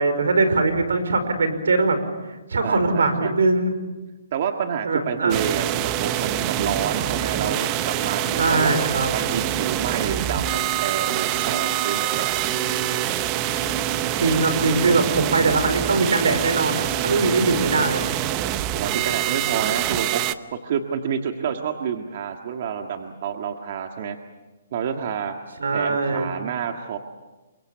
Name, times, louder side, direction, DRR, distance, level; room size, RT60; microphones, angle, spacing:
voice 1, 0.0-2.0 2.5-3.7 4.8-5.4 8.4-9.1 14.2-18.0 25.6-26.2, right 3 dB, 85° right, 10 dB, 5.0 m, -21 dB
voice 2, 2.6-3.3 4.3-12.3 18.7-20.2 20.6-24.2 24.7-25.3 25.7-27.0, right 7 dB, 45° right, 5 dB, 1.8 m, -28 dB
sound 1, 5.3-20.3, right 12 dB, 25° right, 0.8 m, -25 dB
sound 2, 7.4-15.0, right 2 dB, 10° right, 2.5 m, -37 dB
28.5 x 24.0 x 7.1 m, 1.1 s
hypercardioid pair, 160°, 0 cm